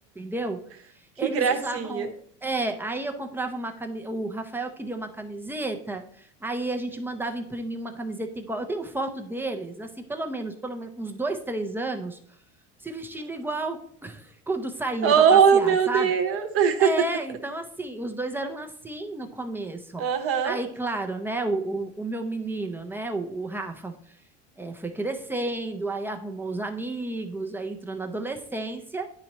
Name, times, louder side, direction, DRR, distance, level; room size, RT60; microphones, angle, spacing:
voice 1, 0.2-0.6 1.2-2.1 2.4-12.2 12.8-16.1 16.8-20.1 20.4-24.0 24.6-29.1, right 2 dB, 5° right, 4 dB, 0.5 m, -31 dB
voice 2, 1.2-2.1 15.0-17.1 20.0-20.6, right 7 dB, 40° right, 8 dB, 0.9 m, -21 dB
10.5 x 4.3 x 2.9 m, 0.62 s
supercardioid pair, 140°, 35 cm